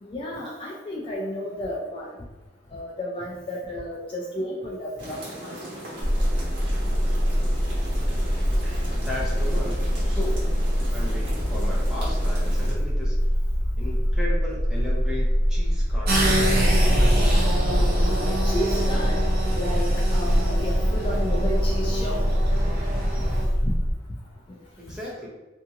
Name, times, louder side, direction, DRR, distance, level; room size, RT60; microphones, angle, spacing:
voice 1, 0.0-2.1 2.7-5.6 17.7-17.9 18.3-19.2 19.5-22.2 23.6-23.7, left 1 dB, 30° left, -4 dB, 0.4 m, -32 dB
sound 1, 5.0-12.7, right 1 dB, 85° right, 1.1 m, -38 dB
sound 2, 6.0-24.0, equal, 40° right, 1.5 m, -24 dB
voice 2, 8.9-9.8 10.0-10.5 10.9-13.2 13.8-17.4 24.8-25.3, left 1 dB, 5° right, -6 dB, 0.7 m, -35 dB
sound 3, 16.1-23.4, right 1 dB, 55° right, 0.7 m, -24 dB
2.7 x 2.7 x 2.4 m, 1.2 s
head